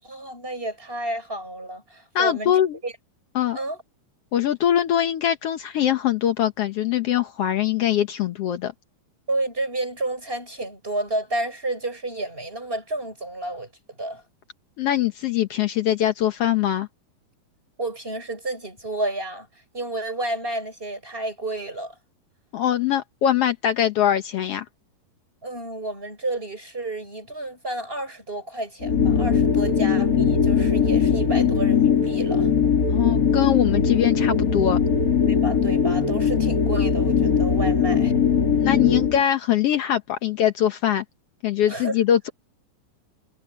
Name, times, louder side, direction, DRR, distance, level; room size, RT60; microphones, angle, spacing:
voice 1, 0.0-2.9 3.5-3.8 9.3-14.2 17.8-19.5 19.7-22.0 25.4-32.5 35.3-38.1 41.7-42.0, right 2 dB, 15° right, 6.9 m, -31 dB
voice 2, 2.1-2.8 3.3-3.6 4.3-8.7 14.8-16.9 22.5-24.6 32.9-34.8 38.5-41.0 41.4-42.3, left 10 dB, 90° left, 1.3 m, -22 dB
sound 1, 28.8-39.2, left 6 dB, 30° left, 2.0 m, -20 dB
omnidirectional pair, 4.2 m